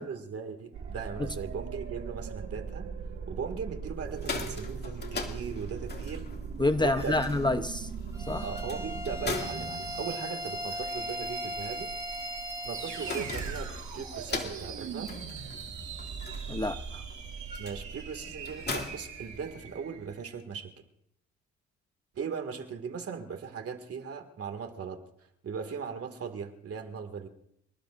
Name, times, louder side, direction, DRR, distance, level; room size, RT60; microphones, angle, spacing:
voice 1, 0.0-2.9 3.3-6.3 6.8-7.3 8.4-11.9 12.6-15.1 17.6-20.7 22.1-25.0 25.4-27.3, right 6 dB, 50° right, 6 dB, 2.2 m, -38 dB
sound 1, 0.7-20.1, right 5 dB, 70° right, 5.0 m, -39 dB
sound 2, 4.0-19.9, left 4 dB, 35° left, 2.4 m, -42 dB
voice 2, 6.6-7.9 8.3-8.4 16.5-17.0, left 2 dB, 15° left, 9 dB, 0.7 m, -28 dB
Bowed string instrument, 8.1-13.4, left 1 dB, 10° right, 4.6 m, -39 dB
28.5 x 19.5 x 2.6 m, 0.76 s
cardioid pair, 90°, 30 cm